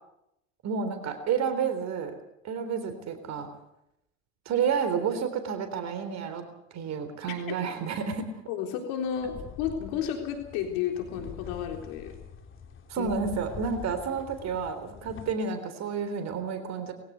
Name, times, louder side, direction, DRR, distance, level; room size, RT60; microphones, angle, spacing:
voice 1, 0.6-2.1 2.4-3.5 4.5-6.4 6.7-8.3 12.9-16.9, right 6 dB, 45° right, 9 dB, 3.7 m, -30 dB
voice 2, 8.5-12.2 13.0-13.1, left 8 dB, 60° left, 3 dB, 3.7 m, -32 dB
sound 1, 9.0-15.3, left 6 dB, 30° left, 3.1 m, -45 dB
22.0 x 16.0 x 8.2 m, 0.83 s
hypercardioid pair, 90°, 38 cm